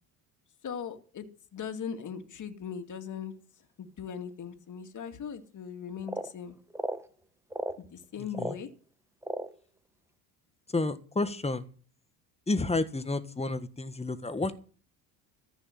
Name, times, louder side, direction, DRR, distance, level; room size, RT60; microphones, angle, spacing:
voice 1, 0.6-1.3 1.5-3.3 3.8-6.6 7.8-8.7, left 7 dB, 45° left, 6 dB, 2.4 m, -39 dB
sound 1, 6.0-6.3 6.7-7.1 7.5-7.8 8.3-8.6 9.2-9.5, right 1 dB, 5° right, 1.2 m, -35 dB
voice 2, 8.2-8.6 10.7-11.7 12.5-14.6, left 2 dB, 15° left, 12 dB, 1.5 m, -31 dB
14.0 x 6.5 x 9.2 m, 0.40 s
supercardioid pair, 80°, 43 cm